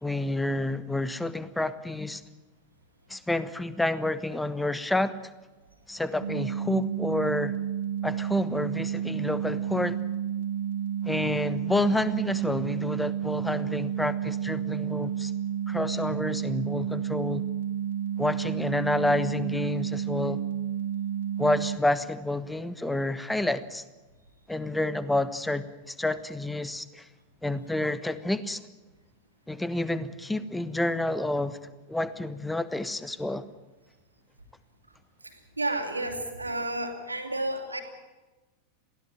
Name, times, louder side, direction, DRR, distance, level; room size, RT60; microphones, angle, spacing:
voice 1, 0.0-2.2 3.1-5.1 5.9-7.5 8.0-10.0 11.0-15.3 15.7-17.4 18.2-20.4 21.4-23.8 24.5-27.0 27.4-28.6 29.5-31.6 31.9-33.4, left 1 dB, 5° left, 15 dB, 1.3 m, -29 dB
sound 1, 6.2-21.8, right 9 dB, 65° right, 2.3 m, -31 dB
voice 2, 35.2-37.8, right 2 dB, 80° right, 4 dB, 3.0 m, -31 dB
22.5 x 16.5 x 8.8 m, 1.2 s
figure-of-eight pair, 90°, 0 cm